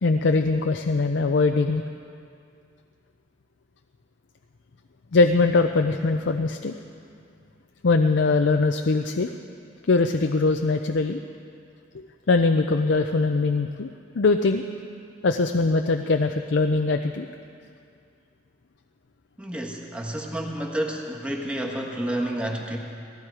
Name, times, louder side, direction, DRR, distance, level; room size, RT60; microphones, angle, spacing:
voice 1, 0.0-1.8 5.1-6.7 7.8-9.3 9.9-11.2 11.9-13.9 14.1-14.6 15.2-17.3, left 3 dB, 70° left, 6 dB, 0.5 m, -22 dB
voice 2, 19.4-22.8, right 1 dB, 5° right, -1 dB, 1.6 m, -30 dB
18.0 x 15.0 x 4.9 m, 2.4 s
head